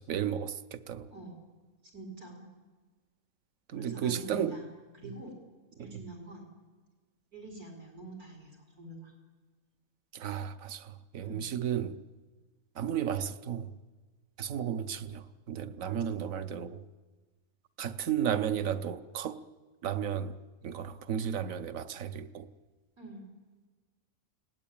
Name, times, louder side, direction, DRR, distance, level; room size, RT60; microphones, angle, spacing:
voice 1, 0.0-1.1 3.7-4.6 5.8-5.9 10.1-12.0 12.8-13.7 14.4-16.8 17.8-19.4 19.8-22.5, right 9 dB, 65° right, 1.3 m, -34 dB
voice 2, 1.9-2.5 3.7-4.6 4.9-5.3 5.8-6.5 7.3-9.1 11.2-11.5 15.9-16.1 23.0-23.2, right 2 dB, 85° right, 5.1 m, -46 dB
29.0 x 19.0 x 8.8 m
omnidirectional pair, 1.5 m